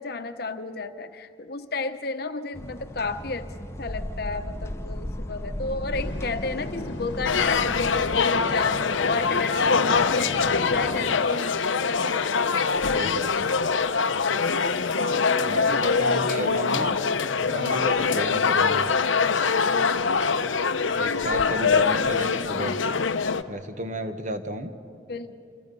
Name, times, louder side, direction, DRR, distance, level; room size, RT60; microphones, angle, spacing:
voice 1, 0.0-11.7 15.0-17.0 17.8-18.2 25.1-25.4, left 3 dB, 55° left, 9 dB, 1.0 m, -32 dB
sound 1, 2.5-8.2, left 1 dB, 15° left, 0.7 m, -35 dB
sound 2, 5.9-11.2, left 2 dB, 70° left, 1.2 m, -36 dB
sound 3, 7.2-23.4, left 5 dB, 90° left, 0.8 m, -23 dB
voice 2, 12.9-13.5 15.5-17.0 17.4-18.9 20.9-22.8 23.5-24.7, right 1 dB, 40° right, 7 dB, 1.3 m, -33 dB
28.5 x 27.5 x 5.5 m, 2.4 s
head